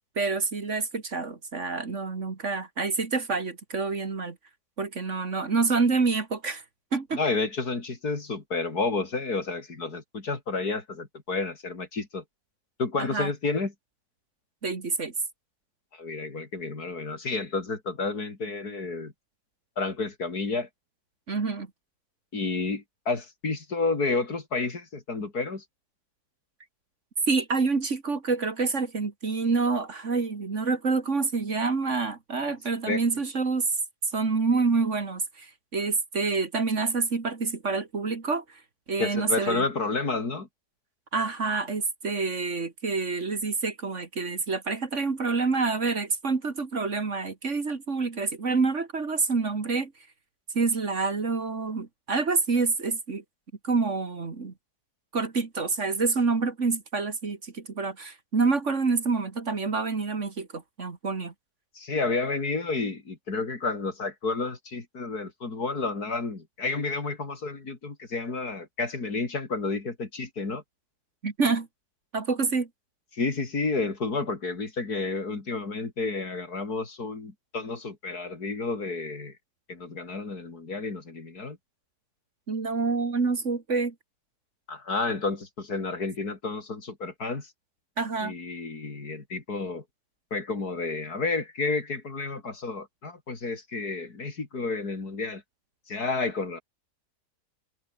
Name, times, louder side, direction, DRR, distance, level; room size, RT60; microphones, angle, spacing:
voice 1, 0.2-4.4 4.8-6.6 6.9-7.2 13.0-13.3 14.6-15.1 21.3-21.7 27.3-33.7 34.1-38.4 38.9-39.6 41.1-49.9 50.5-53.2 53.6-54.5 55.1-61.3 71.2-71.7 72.1-72.7 82.5-83.9 88.0-88.3, right 4 dB, 45° right, 2.3 m, -27 dB
voice 2, 7.1-12.2 12.8-13.7 15.9-19.1 19.8-20.7 22.3-25.6 32.9-33.0 39.0-40.5 61.8-70.6 73.1-79.3 79.7-81.6 84.7-87.5 88.2-89.8 90.3-95.4 95.9-96.6, left 3 dB, 65° left, 4.0 m, -30 dB
omnidirectional pair, 1.8 m